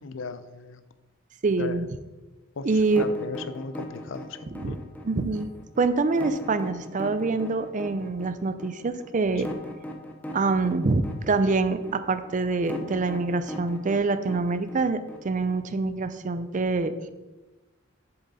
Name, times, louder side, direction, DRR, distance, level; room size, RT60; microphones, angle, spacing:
voice 1, 0.0-0.8 1.6-1.9 2.6-2.7 3.0-4.4 4.7-4.8 9.4-9.5, left 4 dB, 70° left, 12 dB, 0.6 m, -36 dB
voice 2, 1.4-1.9 2.6-3.1 4.5-4.8 5.0-5.5 5.8-9.5 10.3-17.1, right 3 dB, 40° right, 11 dB, 0.5 m, -25 dB
sound 1, 2.9-15.8, equal, 10° left, 0.8 m, -39 dB
7.4 x 6.9 x 4.1 m, 1.1 s
head